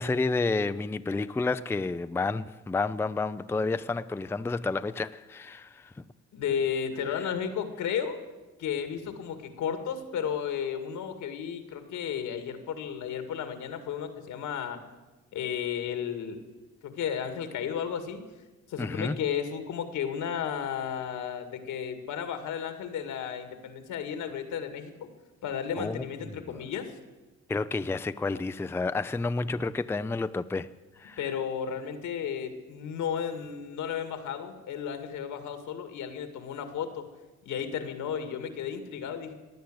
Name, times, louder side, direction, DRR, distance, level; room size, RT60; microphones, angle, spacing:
voice 1, 0.0-5.9 18.8-19.2 25.8-26.0 26.5-26.6 27.5-30.7 31.0-31.2, left 3 dB, 10° left, 0.4 m, -30 dB
voice 2, 6.3-8.2 8.6-14.8 15.3-16.4 16.8-18.2 18.7-25.1 25.4-26.9 31.2-37.1 37.5-39.3, left 8 dB, 80° left, 2.1 m, -33 dB
17.5 x 10.0 x 7.9 m
cardioid pair, 90°, 30 cm